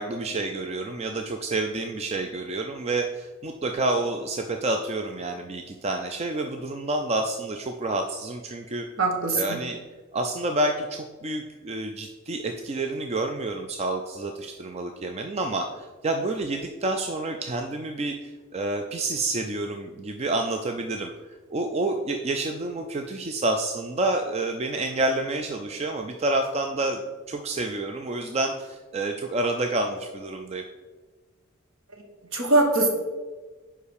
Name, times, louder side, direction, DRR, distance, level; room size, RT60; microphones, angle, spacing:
voice 1, 0.0-8.8 9.3-9.8 10.1-21.1 21.5-27.0 27.3-30.6, right 2 dB, 30° right, 5 dB, 0.4 m, -28 dB
voice 2, 9.0-9.4 32.3-32.9, right 2 dB, 65° right, 2 dB, 1.4 m, -21 dB
5.5 x 4.9 x 6.5 m, 1.3 s
head